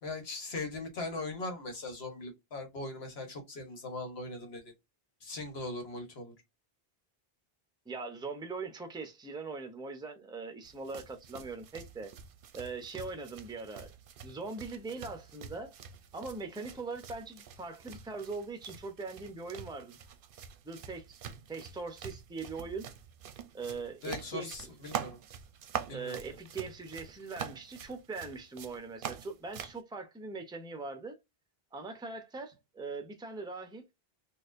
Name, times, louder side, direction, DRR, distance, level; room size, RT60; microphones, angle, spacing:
voice 1, 0.0-4.7 5.2-6.3 24.0-25.2 25.9-26.2, left 2 dB, 80° left, 1.3 m, -40 dB
voice 2, 7.9-12.1 12.5-13.9 14.2-15.7 16.1-20.0 20.6-21.2 21.5-22.9 23.5-24.7 25.9-31.2 31.7-33.8, right 4 dB, 5° right, 0.4 m, -41 dB
sound 1, 10.6-29.8, right 8 dB, 65° right, 0.7 m, -45 dB
4.2 x 2.4 x 2.5 m
omnidirectional pair, 1.0 m